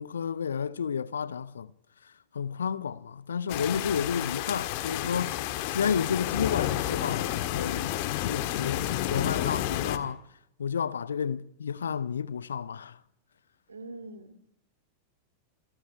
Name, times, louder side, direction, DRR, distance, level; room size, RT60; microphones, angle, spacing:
voice 1, 0.0-1.7 2.3-7.9 8.2-10.2 10.6-13.0, left 7 dB, 70° left, 0.9 m, -31 dB
sound 1, 3.5-10.0, left 13 dB, 45° left, 1.7 m, -30 dB
voice 2, 13.7-14.5, right 2 dB, 75° right, 2.5 m, -43 dB
27.0 x 14.0 x 10.0 m
figure-of-eight pair, 90°, 0 cm